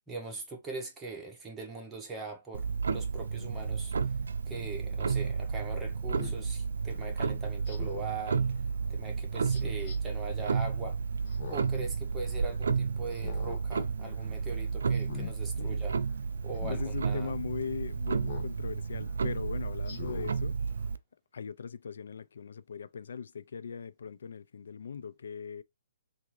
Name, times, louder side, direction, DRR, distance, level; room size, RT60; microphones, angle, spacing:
voice 1, 0.0-3.9 4.5-8.5 8.9-11.0 11.5-15.9 16.4-17.3, right 3 dB, 10° right, 1.1 m, -41 dB
Clock, 2.5-21.0, right 5 dB, 85° right, 0.4 m, -32 dB
Speech synthesizer, 4.5-4.7 6.2-6.4 7.7-8.1 9.5-10.0 11.3-11.8 12.2-12.3 13.1-13.6 14.0-14.3 14.9-15.3 16.6-16.8 18.2-18.5 19.0-19.1 19.8-20.3 20.8-20.9, left 6 dB, 35° left, 1.2 m, -43 dB
voice 2, 16.4-20.6 21.3-25.6, left 6 dB, 75° left, 0.4 m, -40 dB
3.6 x 2.6 x 3.0 m
hypercardioid pair, 160°, 0 cm